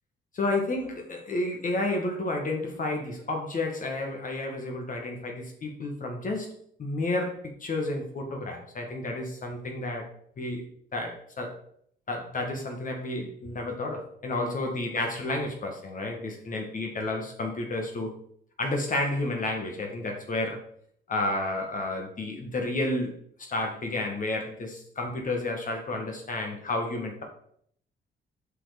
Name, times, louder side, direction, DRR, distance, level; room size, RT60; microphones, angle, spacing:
voice 1, 0.3-6.5 6.8-10.1 10.4-10.6 10.9-11.5 12.1-18.1 18.6-20.6 21.1-23.1 23.5-27.2, left 2 dB, 40° left, 1 dB, 1.5 m, -31 dB
7.5 x 4.6 x 5.0 m, 0.65 s
cardioid pair, 90°, 20 cm